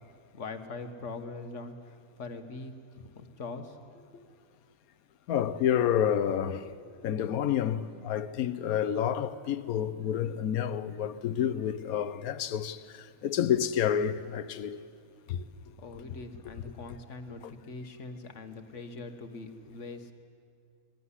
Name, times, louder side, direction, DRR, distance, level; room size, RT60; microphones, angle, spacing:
voice 1, 0.3-4.2 15.8-20.1, left 3 dB, 60° left, 1.6 m, -42 dB
voice 2, 5.3-6.7 7.0-14.8 15.3-15.5 17.4-17.5, left 9 dB, 85° left, 1.2 m, -29 dB
20.5 x 15.5 x 9.9 m
omnidirectional pair, 1.5 m